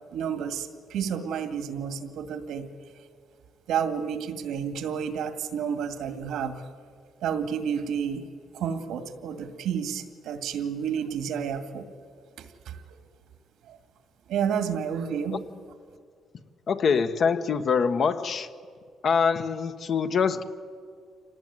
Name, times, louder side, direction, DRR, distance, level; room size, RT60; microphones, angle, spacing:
voice 1, 0.1-2.7 3.7-6.6 7.2-8.3 8.5-11.9 12.4-12.8 13.7-13.8 14.3-15.4, right 7 dB, 85° right, 8 dB, 2.2 m, -30 dB
voice 2, 16.7-18.5 19.0-20.4, left 6 dB, 55° left, 8 dB, 1.3 m, -24 dB
26.0 x 18.5 x 9.5 m, 2.1 s
cardioid pair, 90°, 0 cm